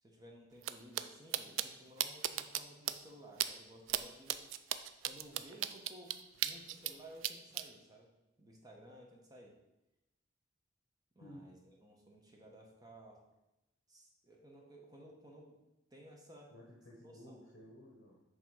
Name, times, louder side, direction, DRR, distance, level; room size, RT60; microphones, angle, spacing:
voice 1, 0.0-4.4 5.0-8.1 8.4-9.6 11.1-13.2 13.9-15.6 15.9-16.5 17.0-17.5, right 1 dB, 20° right, -1 dB, 1.2 m, -56 dB
sound 1, 0.6-0.7 1.0-1.1 1.3-1.7 2.0-2.6 2.9-3.0 3.4-3.5 3.9-4.0 4.3-6.9 7.2-7.6, right 12 dB, 85° right, 0.4 m, -35 dB
voice 2, 16.5-18.2, equal, 60° left, -2 dB, 1.1 m, -55 dB
7.7 x 3.3 x 5.6 m, 0.95 s
head